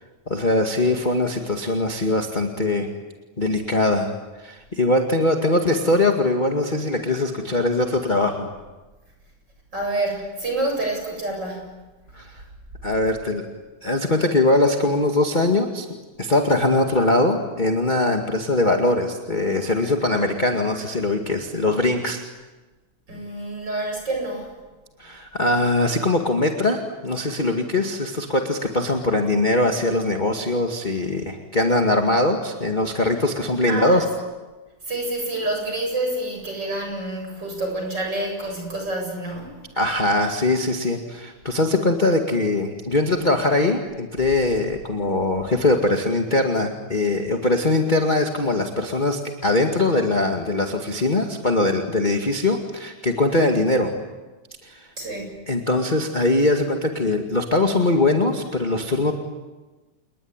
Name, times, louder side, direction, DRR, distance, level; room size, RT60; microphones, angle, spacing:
voice 1, 0.3-2.9 3.4-4.1 4.4-8.5 12.1-12.4 12.8-13.5 13.8-15.8 16.2-22.2 25.0-34.0 39.7-53.9 54.6-54.9 55.5-59.1, left 2 dB, 20° left, 3 dB, 1.7 m, -21 dB
voice 2, 9.7-11.6 23.1-24.5 33.7-34.0 34.9-39.7 55.0-55.4, right 2 dB, 30° right, 2 dB, 8.2 m, -28 dB
29.5 x 21.0 x 9.7 m, 1.2 s
omnidirectional pair, 3.6 m